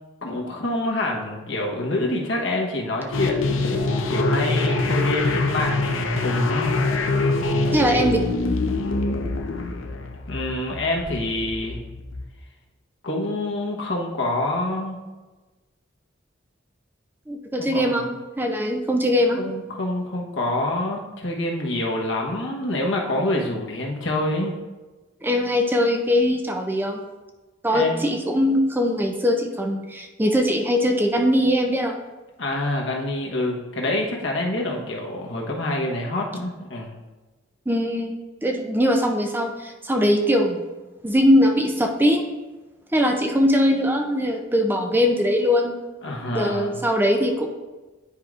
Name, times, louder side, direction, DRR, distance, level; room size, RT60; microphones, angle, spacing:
voice 1, 0.2-6.7 10.3-11.8 13.0-15.0 17.6-18.1 19.4-24.6 27.7-28.0 32.4-36.9 46.0-46.8, left 1 dB, 75° left, -1 dB, 1.1 m, -27 dB
sound 1, 3.1-12.2, left 2 dB, 90° left, 0.6 m, -24 dB
voice 2, 7.7-8.2 17.3-19.4 25.2-27.0 27.6-32.0 37.7-40.6 41.0-42.3 42.9-45.7 46.3-47.5, equal, 10° right, 3 dB, 0.4 m, -21 dB
10.0 x 4.7 x 2.5 m, 1.2 s
head